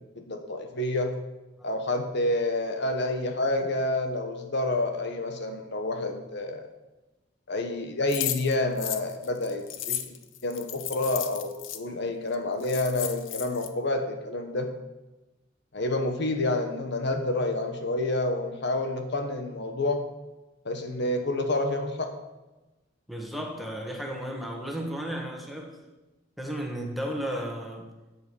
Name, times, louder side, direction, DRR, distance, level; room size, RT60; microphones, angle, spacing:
voice 1, 0.2-1.1 1.6-6.7 7.5-10.1 10.4-14.7 15.7-20.1 20.6-22.1, left 2 dB, 60° left, 5 dB, 1.2 m, -28 dB
sound 1, 8.1-11.8 12.3-12.4 12.6-13.7, left 11 dB, 80° left, 0.8 m, -34 dB
voice 2, 23.1-25.8 26.4-27.9, equal, ahead, 1 dB, 1.5 m, -34 dB
8.4 x 7.8 x 6.9 m, 1.1 s
head